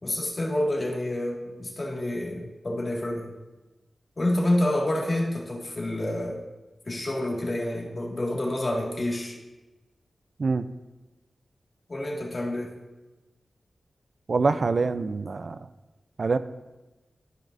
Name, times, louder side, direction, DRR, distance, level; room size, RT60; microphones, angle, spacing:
voice 1, 0.0-3.3 4.2-6.4 6.9-9.4 11.9-12.8, left 1 dB, 40° left, -2 dB, 1.9 m, -28 dB
voice 2, 14.3-15.6 16.2-16.4, right 4 dB, 60° right, 12 dB, 0.3 m, -25 dB
14.0 x 5.2 x 2.6 m, 1.1 s
cardioid pair, 60°, 0 cm